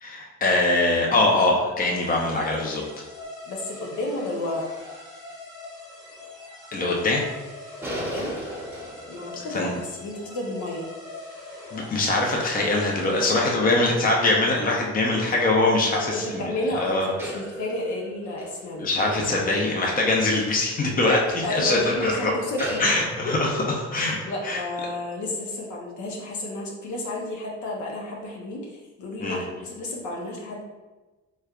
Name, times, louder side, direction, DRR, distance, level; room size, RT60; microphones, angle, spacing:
voice 1, 0.0-2.8 6.7-7.2 9.5-9.8 11.7-16.4 16.8-17.1 18.8-22.3 22.8-23.6 23.9-24.2 24.4-24.6 29.2-29.4, left 2 dB, 30° left, -1 dB, 0.6 m, -23 dB
sound 1, 2.0-13.7, left 2 dB, 10° left, 1.4 m, -42 dB
voice 2, 3.5-4.7 7.9-8.4 9.1-10.9 15.9-18.9 21.1-22.8 23.2-23.6 24.2-30.6, left 1 dB, 70° left, -1 dB, 0.9 m, -31 dB
sound 2, 7.8-11.7 16.5-16.6 17.0-26.1, right 1 dB, 5° right, 0.8 m, -39 dB
3.3 x 3.2 x 2.4 m, 1.2 s
cardioid pair, 90°, 30 cm